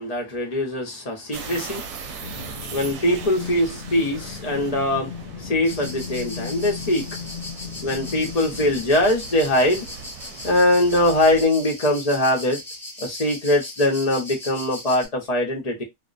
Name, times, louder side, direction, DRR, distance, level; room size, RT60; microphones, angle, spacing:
voice 1, 0.0-1.9 2.7-7.2 7.8-9.9 10.4-12.6 13.0-15.8, left 1 dB, 35° left, 0.7 m, -22 dB
sound 1, 1.3-11.5, right 5 dB, 70° right, 0.9 m, -40 dB
sound 2, 2.2-9.0, left 7 dB, 85° left, 0.4 m, -37 dB
sound 3, 5.6-15.1, left 1 dB, ahead, 0.8 m, -38 dB
2.4 x 2.1 x 2.4 m
omnidirectional pair, 1.4 m